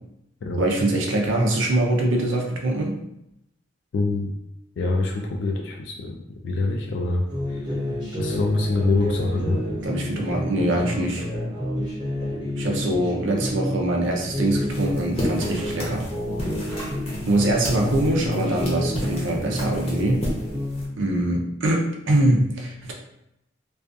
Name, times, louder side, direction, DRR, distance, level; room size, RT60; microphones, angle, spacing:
voice 1, 0.6-3.0 9.8-11.3 12.6-16.0 17.3-20.2 21.0-22.9, right 1 dB, 85° right, 1 dB, 0.5 m, -23 dB
voice 2, 3.9-4.3 4.8-6.2 6.4-7.3 7.5-7.6 8.2-9.6, left 2 dB, 65° left, 0 dB, 0.3 m, -24 dB
sound 1, 7.3-13.8 14.2-17.5 17.8-20.9, left 1 dB, 25° right, 0.7 m, -29 dB
sound 2, 14.7-20.9, left 1 dB, 30° left, 0.7 m, -33 dB
2.4 x 2.3 x 2.5 m, 0.84 s
head